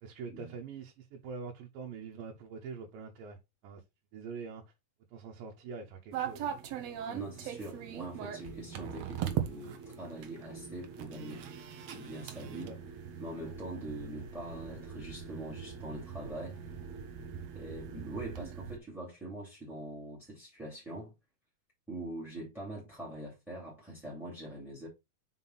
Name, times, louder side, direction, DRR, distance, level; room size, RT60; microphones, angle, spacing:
voice 1, 0.0-3.4 3.6-3.8 4.1-4.6 5.1-6.5 6.9-7.0 12.3-12.4 12.7-12.8, right 5 dB, 90° right, 2.7 m, -44 dB
sound 1, 6.1-18.8, right 9 dB, 65° right, 1.8 m, -41 dB
voice 2, 7.1-11.5 11.9-12.7 13.2-16.6 17.5-21.1 21.9-24.9, right 1 dB, ahead, 2.1 m, -43 dB
sound 2, 7.1-19.0, right 2 dB, 45° right, 2.6 m, -52 dB
5.9 x 5.2 x 4.0 m
omnidirectional pair, 3.9 m